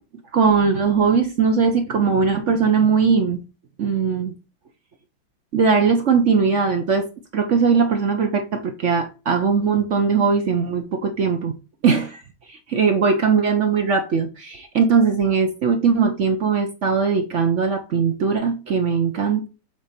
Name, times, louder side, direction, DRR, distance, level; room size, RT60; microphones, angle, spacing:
voice 1, 0.3-3.4 3.8-4.3 5.5-11.6 11.8-12.2 12.5-19.5, right 5 dB, 55° right, 0.8 m, -20 dB
7.2 x 4.0 x 5.1 m
omnidirectional pair, 2.1 m